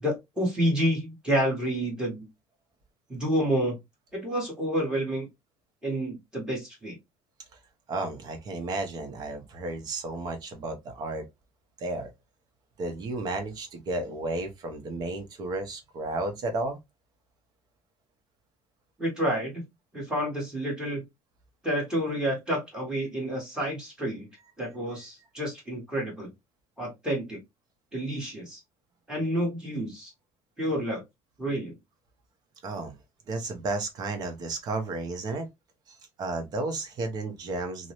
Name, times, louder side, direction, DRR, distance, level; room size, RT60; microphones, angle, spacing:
voice 1, 0.0-2.3 3.1-3.8 4.1-5.3 5.8-7.0 19.0-19.6 19.9-21.0 21.6-24.3 24.6-26.3 26.8-27.4 27.9-28.6 29.1-30.1 30.6-31.0 31.4-31.7, equal, 5° right, 1.3 m, -29 dB
voice 2, 7.9-11.2 11.8-12.1 12.8-16.8 32.6-32.9 33.3-35.5 35.9-37.9, right 2 dB, 35° right, 0.7 m, -33 dB
2.6 x 2.0 x 2.8 m
cardioid pair, 165°, 11 cm